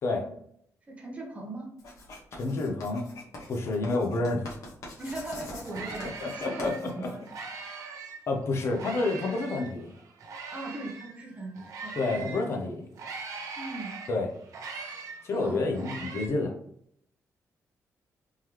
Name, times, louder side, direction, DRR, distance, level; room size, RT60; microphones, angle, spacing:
voice 1, 0.1-0.4 0.9-1.7 5.0-7.2 10.5-12.3 13.6-13.9 15.3-15.6, right 2 dB, 20° right, -1 dB, 0.8 m, -39 dB
Writing, 1.8-7.6, left 2 dB, 65° left, 1.2 m, -44 dB
voice 2, 2.3-3.0 3.5-4.4 6.2-6.7 7.0-7.1 8.3-9.9 12.0-12.9 14.1-14.3 15.2-16.5, left 3 dB, 50° left, 3 dB, 0.6 m, -29 dB
sound 1, 5.1-5.2 5.5-8.2 8.7-12.5 12.9-16.3, right 4 dB, 75° right, 0.8 m, -41 dB
3.7 x 3.1 x 3.0 m, 0.68 s
wide cardioid pair, 175°, 6 cm